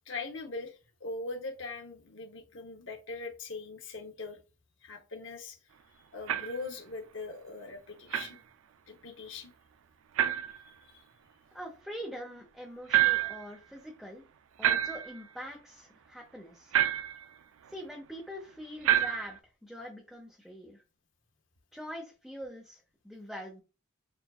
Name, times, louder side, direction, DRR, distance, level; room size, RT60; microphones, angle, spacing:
voice 1, 0.1-4.4 4.8-5.6 6.1-8.4 8.9-9.5 10.5-11.0, left 3 dB, 70° left, 0.9 m, -41 dB
sound 1, 6.3-6.6 8.1-8.3 10.2-10.6 12.9-13.5 14.6-15.2 16.7-17.3 18.8-19.4, right 11 dB, 80° right, 0.3 m, -27 dB
voice 2, 11.5-14.2 14.6-16.7 17.7-20.8 21.7-23.6, equal, ahead, 0.8 m, -44 dB
7.0 x 2.5 x 2.4 m
head